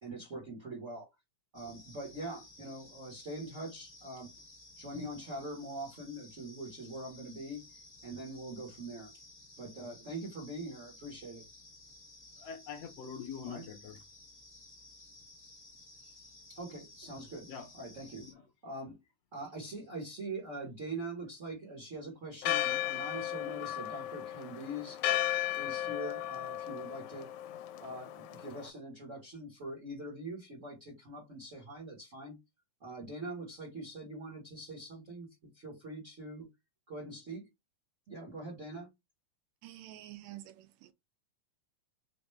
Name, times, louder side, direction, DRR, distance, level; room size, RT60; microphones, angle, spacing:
voice 1, 0.0-1.1 1.5-4.3 4.8-7.6 8.0-9.1 9.6-11.4 13.5-13.6 16.5-17.5 17.7-18.3 18.6-19.0 19.3-25.0 25.5-27.3 27.8-32.4 32.8-36.5 36.9-37.5 38.1-38.9, right 1 dB, 55° right, 0.8 m, -43 dB
sound 1, 1.5-18.3, left 2 dB, 40° left, 0.8 m, -55 dB
voice 2, 12.4-14.0 17.5-17.7 18.2-18.4 22.3-22.4, left 7 dB, 70° left, 1.7 m, -44 dB
Church bell, 22.4-28.7, left 13 dB, 85° left, 2.0 m, -35 dB
voice 3, 39.6-40.9, right 14 dB, 80° right, 1.7 m, -49 dB
5.0 x 2.1 x 3.1 m
omnidirectional pair, 3.4 m